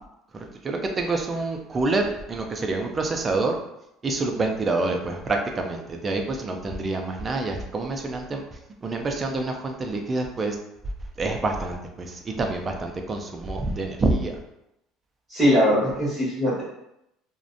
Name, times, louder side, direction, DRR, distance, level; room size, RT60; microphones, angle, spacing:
voice 1, 0.3-3.6 4.0-8.4 8.8-10.6 11.2-14.3, right 3 dB, 20° right, 3 dB, 0.3 m, -27 dB
voice 2, 15.3-16.6, equal, 5° right, -13 dB, 1.0 m, -21 dB
2.5 x 2.1 x 2.5 m, 0.83 s
cardioid pair, 145°, 0 cm